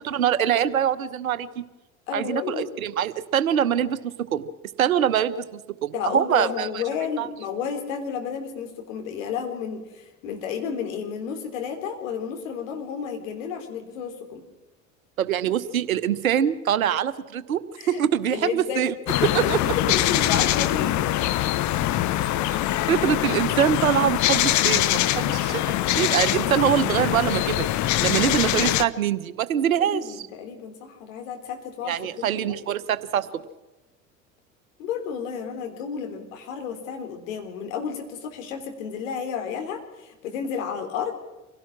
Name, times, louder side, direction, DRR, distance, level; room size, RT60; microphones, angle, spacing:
voice 1, 0.0-1.6 2.1-4.0 4.3-4.5 4.8-6.7 7.2-7.3 15.2-18.9 19.2-19.6 22.9-25.6 25.9-27.7 28.0-30.1 31.9-33.3, right 9 dB, 80° right, 14 dB, 1.1 m, -24 dB
voice 2, 2.1-2.7 5.9-14.5 17.8-18.0 18.3-18.9 19.2-21.2 29.7-32.5 34.8-41.1, left 7 dB, 70° left, 4 dB, 3.8 m, -32 dB
sound 1, 19.1-28.8, left 14 dB, 45° left, 1.0 m, -23 dB
26.0 x 17.5 x 6.1 m, 1.1 s
figure-of-eight pair, 70°, 41 cm